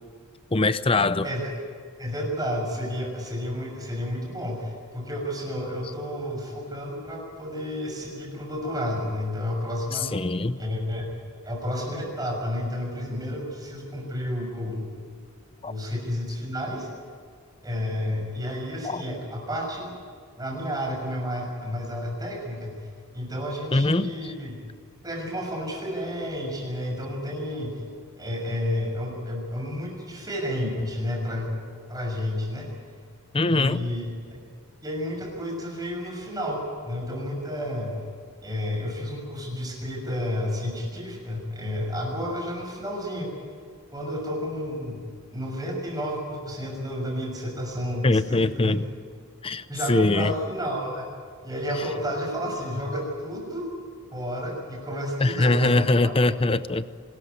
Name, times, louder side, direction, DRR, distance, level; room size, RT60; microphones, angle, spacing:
voice 1, 0.5-1.2 10.1-10.6 15.6-15.7 18.8-19.0 23.7-24.1 33.3-33.9 48.0-48.8 49.4-50.3 55.2-56.8, left 2 dB, 25° left, 14 dB, 0.6 m, -22 dB
voice 2, 1.2-1.5 2.0-10.1 10.6-11.2 11.4-15.1 15.6-16.9 17.6-19.9 20.4-24.6 25.0-27.8 28.2-31.6 31.9-32.7 33.5-34.1 34.8-38.0 38.4-43.3 43.9-45.0 45.3-48.8 49.7-51.1 51.4-53.7 54.1-56.3, equal, 15° right, 0 dB, 6.3 m, -31 dB
25.5 x 13.5 x 9.5 m, 2.1 s
head